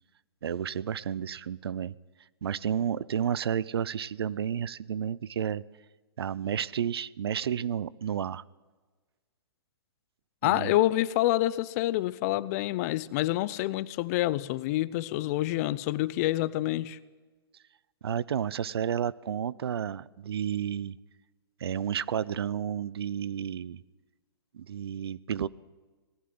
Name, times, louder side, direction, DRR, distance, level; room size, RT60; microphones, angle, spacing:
voice 1, 0.4-1.9 2.4-5.6 6.2-8.4 10.4-10.8 18.0-21.0 21.6-23.8 24.5-25.5, right 8 dB, 70° right, 21 dB, 0.7 m, -31 dB
voice 2, 10.4-17.0, left 16 dB, 40° left, 19 dB, 0.8 m, -27 dB
19.0 x 15.0 x 9.6 m, 1.3 s
hypercardioid pair, 135°, 13 cm